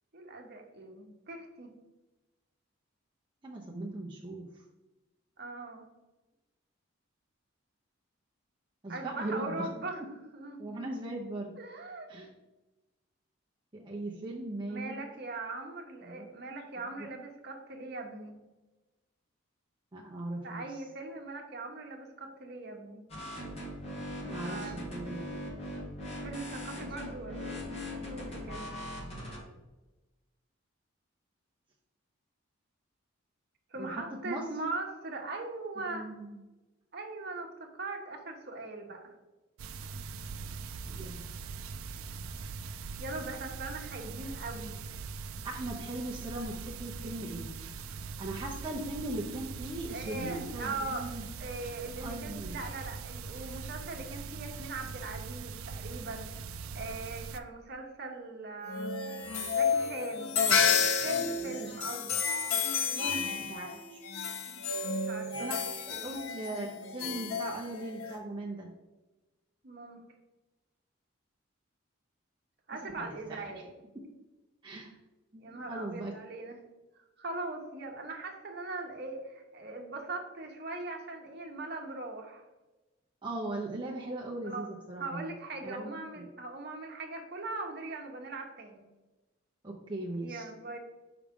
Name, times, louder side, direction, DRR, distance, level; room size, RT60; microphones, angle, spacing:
voice 1, 0.1-1.7 5.4-5.9 8.9-10.0 10.3-10.9 11.6-12.1 14.7-18.4 20.4-23.0 24.2-24.8 26.2-28.7 33.7-36.1 36.9-39.1 43.0-44.8 49.9-51.1 51.4-56.3 56.7-59.0 59.5-60.3 61.0-62.2 62.9-63.5 64.5-65.6 65.9-66.1 69.6-70.0 72.7-73.7 75.4-76.6 77.2-82.4 84.4-84.7 85.0-88.8 90.2-90.8, right 2 dB, 50° right, 2 dB, 1.0 m, -40 dB
voice 2, 3.4-4.5 8.8-9.7 10.6-11.5 12.1-12.3 13.7-14.9 16.1-16.3 19.9-20.6 24.2-25.3 26.7-26.9 33.8-34.4 35.9-36.3 40.9-41.2 45.4-47.5 48.2-51.3 52.0-52.6 60.3-60.6 61.4-61.7 63.5-64.0 65.4-68.7 73.0-73.4 74.6-74.9 75.3-76.1 83.2-85.3 85.6-86.3 89.6-90.4, right 2 dB, 20° right, -3 dB, 0.7 m, -39 dB
sound 1, 23.1-29.4, left 1 dB, 30° left, 1.7 m, -40 dB
sound 2, 39.6-57.4, right 5 dB, 85° right, 0.4 m, -42 dB
sound 3, 58.7-68.2, left 6 dB, 80° left, 0.7 m, -31 dB
6.3 x 4.9 x 3.6 m, 1.1 s
head